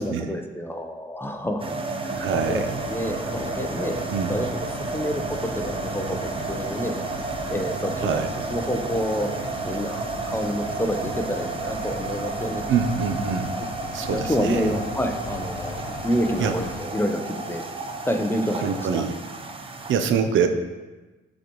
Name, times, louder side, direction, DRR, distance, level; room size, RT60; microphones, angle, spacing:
voice 1, 0.0-1.8 2.0-2.2 2.5-4.5 4.9-5.2 5.6-6.9 7.5-8.2 8.5-9.3 9.6-12.6 14.1-17.7 18.0-19.1, equal, 10° left, 4 dB, 0.8 m, -28 dB
sound 1, 1.6-19.9, right 3 dB, 25° right, 0.8 m, -32 dB
sound 2, 2.1-16.8, left 4 dB, 80° left, 0.8 m, -38 dB
voice 2, 2.1-2.8 4.1-4.5 8.0-8.4 12.7-13.5 13.9-14.7 16.4-16.5 18.6-19.1 19.9-20.5, right 6 dB, 75° right, 7 dB, 0.7 m, -25 dB
12.5 x 4.2 x 3.1 m, 1.2 s
cardioid pair, 90°, 20 cm